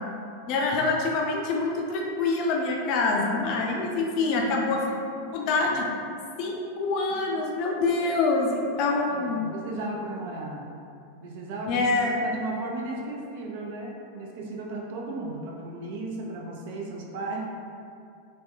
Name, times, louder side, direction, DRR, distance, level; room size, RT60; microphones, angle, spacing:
voice 1, 0.5-4.8 5.3-5.9 6.4-9.5 11.7-12.2, left 3 dB, 40° left, -1 dB, 0.3 m, -25 dB
voice 2, 9.1-10.6 11.2-17.4, right 2 dB, 50° right, -1 dB, 0.4 m, -35 dB
3.2 x 2.1 x 2.2 m, 2.4 s
figure-of-eight pair, 90°, 0 cm